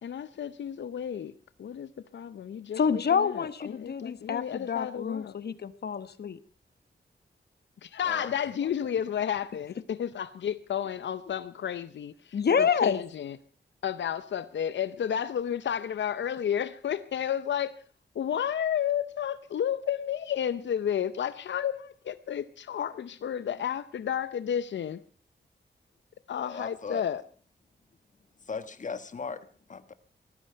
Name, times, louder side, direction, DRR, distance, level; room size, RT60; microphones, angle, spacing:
voice 1, 0.0-1.3 1.6-5.3 7.8-13.4 13.8-17.7 18.1-25.0 26.3-27.2, left 9 dB, 90° left, 0.7 m, -32 dB
voice 2, 2.7-6.4 12.3-13.0, left 6 dB, 65° left, 1.1 m, -27 dB
voice 3, 26.4-27.0 28.5-29.4 29.7-29.9, left 5 dB, 45° left, 1.3 m, -37 dB
18.5 x 14.0 x 5.6 m
wide cardioid pair, 125°, 18 cm